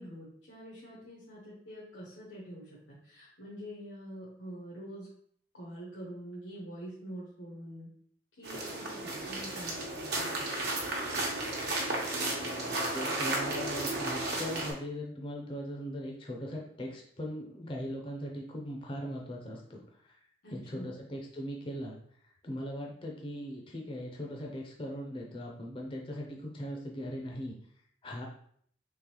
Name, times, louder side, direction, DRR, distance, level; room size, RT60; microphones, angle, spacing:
voice 1, 0.0-5.1 5.5-7.9 8.4-10.4 20.4-20.9, equal, 90° left, -7 dB, 1.1 m, -45 dB
sound 1, 8.4-14.7, right 2 dB, 60° right, 0.9 m, -33 dB
voice 2, 12.9-20.2 20.5-27.6 28.0-28.3, equal, 30° left, -1 dB, 0.5 m, -40 dB
3.8 x 3.1 x 3.0 m, 0.63 s
head